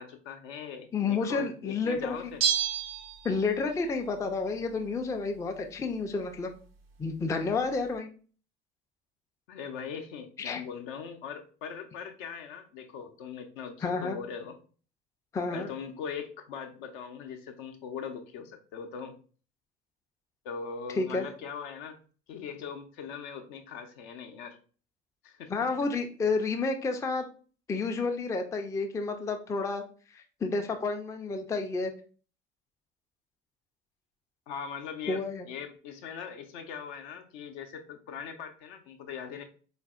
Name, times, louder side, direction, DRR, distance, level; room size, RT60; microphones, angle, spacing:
voice 1, 0.0-2.5 9.5-14.6 15.5-19.2 20.4-22.0 22.3-24.6 25.2-25.5 34.5-39.4, left 6 dB, 60° left, 5 dB, 0.6 m, -40 dB
voice 2, 0.9-2.2 3.2-6.5 7.0-8.1 10.4-10.6 13.8-14.2 15.3-15.7 20.9-21.3 25.5-27.2 27.7-29.8 30.1-31.9 35.1-35.5, left 4 dB, 10° left, 5 dB, 0.4 m, -30 dB
Bell, 2.4-3.8 4.1-4.2, right 8 dB, 80° right, 0.5 m, -30 dB
4.0 x 2.5 x 2.3 m, 0.39 s
figure-of-eight pair, 55°, 29 cm